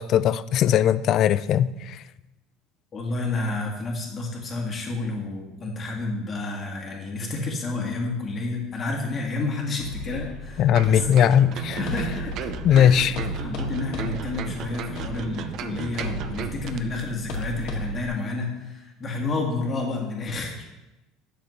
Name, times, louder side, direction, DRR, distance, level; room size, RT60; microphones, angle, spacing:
voice 1, 0.0-1.7 10.6-11.8 12.6-13.2, left 10 dB, 45° left, 16 dB, 0.3 m, -19 dB
voice 2, 2.9-11.1 11.4-20.6, left 3 dB, 25° left, 0 dB, 1.7 m, -30 dB
sound 1, 9.8-18.1, left 1 dB, 60° left, 1.7 m, -35 dB
sound 2, 10.7-17.0 17.3-17.5, right 8 dB, 50° right, 0.6 m, -35 dB
10.0 x 6.5 x 3.1 m, 1.0 s
cardioid pair, 150°, 0 cm